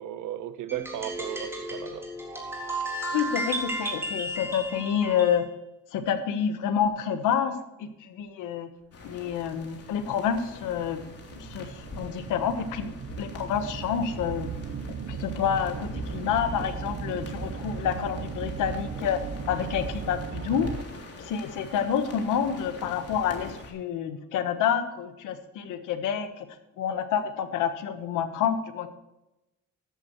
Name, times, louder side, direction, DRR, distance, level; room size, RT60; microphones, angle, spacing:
voice 1, 0.0-2.1, right 11 dB, 85° right, 1.0 m, -35 dB
sound 1, 0.7-5.4, right 1 dB, 10° right, 3.6 m, -33 dB
voice 2, 3.1-5.4 5.9-8.7 9.0-11.0 11.4-14.5 15.1-19.2 19.5-20.7 21.2-26.5 26.8-28.9, left 8 dB, 90° left, 1.4 m, -28 dB
sound 2, 8.9-23.7, left 3 dB, 50° left, 3.4 m, -44 dB
sound 3, 10.4-21.1, right 6 dB, 40° right, 0.9 m, -37 dB
13.5 x 11.0 x 3.2 m
cardioid pair, 90°, 30 cm